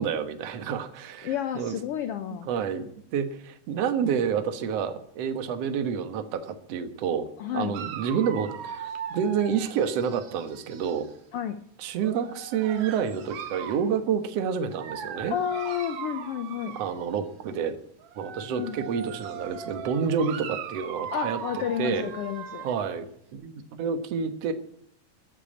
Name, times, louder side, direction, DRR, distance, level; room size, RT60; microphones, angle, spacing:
voice 1, 0.0-1.8 2.5-7.3 7.5-11.1 11.8-15.4 16.7-17.8 18.2-21.4 21.8-22.1 22.6-24.5, right 7 dB, 60° right, 9 dB, 2.2 m, -29 dB
voice 2, 1.2-2.5 7.4-7.8 11.3-11.6 15.3-16.8 18.5-18.8 21.1-22.7, left 9 dB, 85° left, 10 dB, 1.2 m, -31 dB
Dog, 7.7-11.1 12.0-13.9 14.7-17.3 18.0-22.9, right 8 dB, 85° right, 3.1 m, -39 dB
13.5 x 8.8 x 8.5 m, 0.66 s
omnidirectional pair, 3.7 m